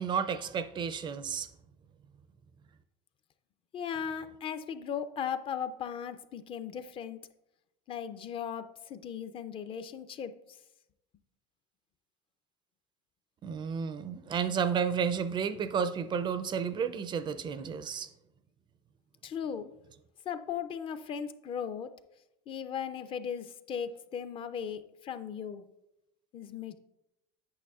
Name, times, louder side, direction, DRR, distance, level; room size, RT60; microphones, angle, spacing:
voice 1, 0.0-1.5 13.4-18.1, right 7 dB, 30° right, 0.4 m, -32 dB
voice 2, 3.7-7.2 7.9-10.3 19.2-19.7 20.3-21.9 22.5-25.7 26.3-26.8, left 8 dB, 35° left, 0.4 m, -37 dB
8.5 x 6.4 x 2.4 m
supercardioid pair, 110°, 15 cm